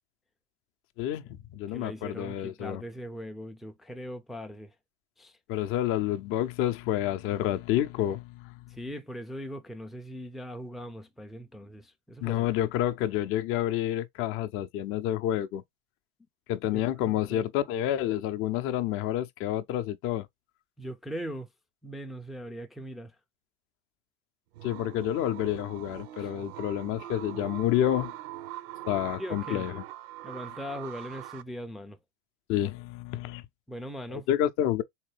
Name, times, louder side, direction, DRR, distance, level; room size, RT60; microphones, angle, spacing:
voice 1, 1.0-2.8 5.5-8.5 12.2-15.6 16.5-20.3 24.6-28.1 28.9-29.8 32.5-33.5 34.1-34.8, left 12 dB, 40° left, 0.6 m, -29 dB
voice 2, 1.7-4.7 5.2-5.4 8.7-12.5 16.7-17.4 20.8-21.5 21.8-23.1 26.2-26.3 29.2-29.7 30.2-32.0 33.7-34.3, equal, ahead, 0.4 m, -40 dB
sound 1, 24.5-31.4, right 14 dB, 65° right, 0.6 m, -42 dB
3.7 x 2.8 x 3.2 m
hypercardioid pair, 95°, 32 cm